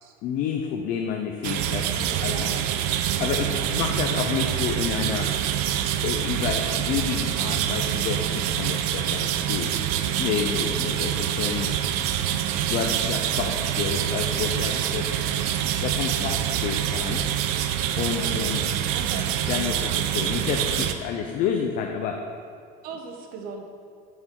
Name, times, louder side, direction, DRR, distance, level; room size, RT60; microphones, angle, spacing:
voice 1, 0.2-2.5 3.2-5.3 6.0-9.8 10.2-11.7 12.6-15.1 15.8-17.3 18.0-18.6 19.0-19.1 19.5-22.3, left 7 dB, 45° left, 3 dB, 0.5 m, -29 dB
sound 1, 1.4-20.9, right 10 dB, 90° right, 0.5 m, -26 dB
voice 2, 2.0-2.7 3.4-3.7 18.1-18.3 18.9-19.3 22.8-23.7, right 5 dB, 50° right, 3 dB, 0.9 m, -39 dB
9.0 x 6.3 x 3.7 m, 2.2 s
cardioid pair, 175°, 20 cm